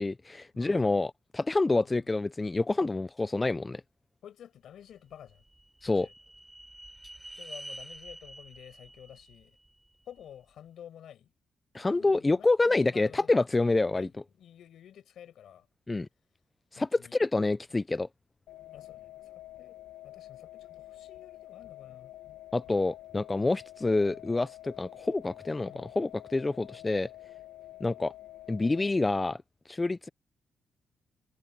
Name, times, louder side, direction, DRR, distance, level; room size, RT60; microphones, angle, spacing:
voice 1, 0.0-3.8 5.8-6.1 11.7-14.1 15.9-16.1 16.7-18.1 22.5-27.1 27.8-28.1 28.5-29.4 29.7-30.1, left 2 dB, 15° left, 0.3 m, -27 dB
voice 2, 0.5-1.0 1.7-2.0 4.2-5.4 5.9-6.1 7.3-9.6 10.1-11.3 11.9-13.4 13.9-15.7 16.8-17.1 17.7-17.8 18.7-19.8 20.0-22.1 24.0-24.3 25.7-25.9, left 10 dB, 65° left, 5.7 m, -51 dB
sound 1, 5.1-10.3, right 1 dB, 10° right, 6.7 m, -48 dB
sound 2, 18.5-28.9, left 15 dB, 85° left, 1.1 m, -48 dB
wide cardioid pair, 175°, 0 cm